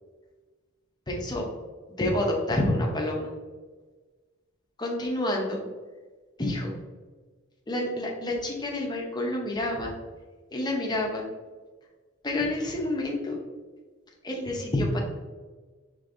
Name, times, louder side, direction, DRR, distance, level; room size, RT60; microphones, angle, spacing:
voice 1, 1.1-1.5 1.9-3.3 4.8-5.6 6.4-6.8 7.7-9.9 10.5-11.3 12.2-13.4 14.2-15.0, left 1 dB, 20° left, 0 dB, 0.7 m, -28 dB
5.1 x 3.3 x 2.6 m, 1.3 s
head